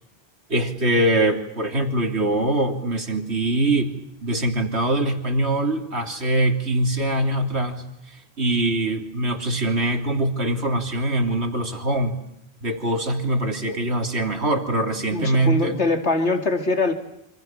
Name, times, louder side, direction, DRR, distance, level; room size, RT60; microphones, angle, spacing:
voice 1, 0.5-3.9 4.2-7.8 8.4-12.2 12.6-15.8, right 1 dB, 80° right, 4 dB, 3.5 m, -23 dB
voice 2, 15.1-16.9, left 3 dB, 85° left, 6 dB, 2.8 m, -23 dB
28.0 x 26.5 x 7.5 m, 0.80 s
omnidirectional pair, 1.1 m